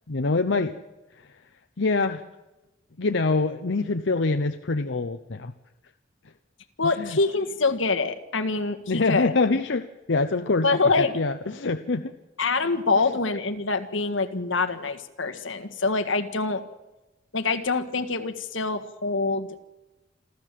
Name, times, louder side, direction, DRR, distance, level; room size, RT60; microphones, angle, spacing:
voice 1, 0.1-0.7 1.8-2.2 3.0-5.5 6.8-7.2 8.9-10.7 11.0-12.1, left 3 dB, 70° left, 7 dB, 0.8 m, -25 dB
voice 2, 6.8-9.3 10.6-11.1 12.4-16.6 17.3-19.5, left 3 dB, 90° left, 8 dB, 1.7 m, -25 dB
27.5 x 13.0 x 7.6 m, 1.0 s
head